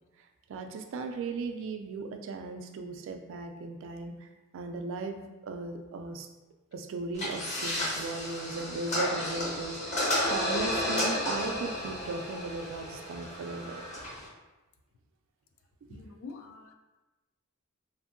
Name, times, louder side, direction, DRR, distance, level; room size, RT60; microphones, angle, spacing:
voice 1, 0.5-4.3 4.5-6.3 6.7-13.8 15.9-16.0, right 3 dB, 65° right, 5 dB, 0.3 m, -37 dB
sound 1, 7.1-14.3, left 1 dB, 35° left, 0.7 m, -32 dB
voice 2, 15.9-16.7, left 4 dB, 65° left, 5 dB, 0.3 m, -46 dB
2.7 x 2.5 x 2.5 m, 1.1 s
head